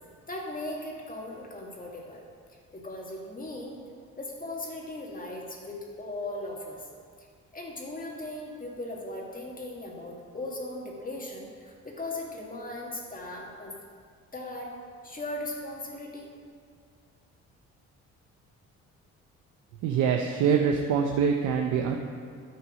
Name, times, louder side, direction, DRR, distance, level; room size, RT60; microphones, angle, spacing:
voice 1, 0.3-2.3 2.7-3.8 4.2-6.8 7.5-13.7 14.3-14.7 15.0-16.4, left 1 dB, 30° left, -2 dB, 1.8 m, -38 dB
voice 2, 19.8-21.9, right 7 dB, 85° right, 3 dB, 0.7 m, -24 dB
9.7 x 6.3 x 5.3 m, 2.1 s
cardioid pair, 90°, 30 cm